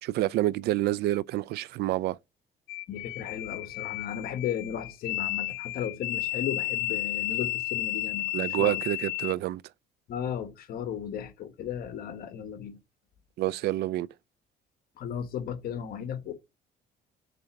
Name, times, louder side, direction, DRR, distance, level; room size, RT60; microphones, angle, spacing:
voice 1, 0.0-2.2 8.3-9.6 13.4-14.1, right 15 dB, 70° right, 0.4 m, -28 dB
sound 1, 2.7-9.3, left 18 dB, 85° left, 0.4 m, -33 dB
voice 2, 2.9-8.3 8.6-8.8 10.1-12.8 15.0-16.3, left 8 dB, 60° left, 1.3 m, -35 dB
6.7 x 3.4 x 5.8 m
cardioid pair, 110°, 17 cm